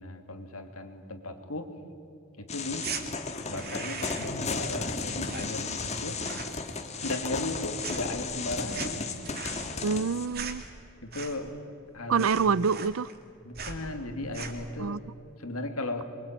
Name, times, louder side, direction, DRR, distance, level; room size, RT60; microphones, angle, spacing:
voice 1, 0.0-1.7 2.4-2.9 3.5-6.2 7.0-9.1 11.0-11.5 11.9-12.5 13.4-15.0 15.4-16.1, left 2 dB, 90° left, 6 dB, 2.8 m, -36 dB
sound 1, 2.5-10.3, left 4 dB, 30° left, 1.8 m, -34 dB
sound 2, 2.8-3.0 3.5-4.4 4.7-5.9 6.1-6.6 6.9-7.6 7.8-11.6 11.9-12.0 12.2-13.3 13.5-13.8 14.2-14.7, right 6 dB, 45° right, 2.6 m, -40 dB
voice 2, 9.8-10.6 12.1-13.1 14.8-15.0, right 5 dB, 75° right, 22 dB, 0.5 m, -26 dB
24.5 x 23.5 x 9.0 m, 2.7 s
head